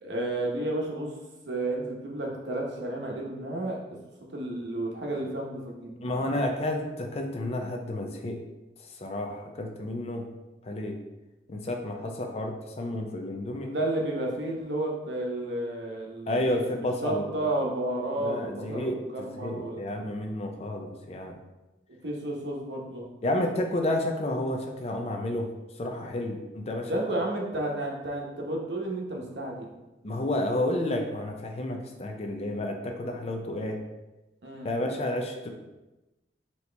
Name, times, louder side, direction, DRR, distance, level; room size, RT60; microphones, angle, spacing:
voice 1, 0.0-1.1 1.5-3.8 4.3-5.9 6.3-6.4 13.6-16.4 17.0-19.9 22.0-23.1 26.9-29.7 34.4-34.7, right 1 dB, 80° right, -1 dB, 0.9 m, -32 dB
voice 2, 6.0-8.4 9.0-10.3 10.6-11.0 11.5-13.7 16.3-17.6 18.2-21.4 23.2-25.5 25.8-26.9 30.0-33.8 34.6-35.5, left 1 dB, 35° left, 3 dB, 0.4 m, -31 dB
4.2 x 2.9 x 3.3 m, 1.0 s
head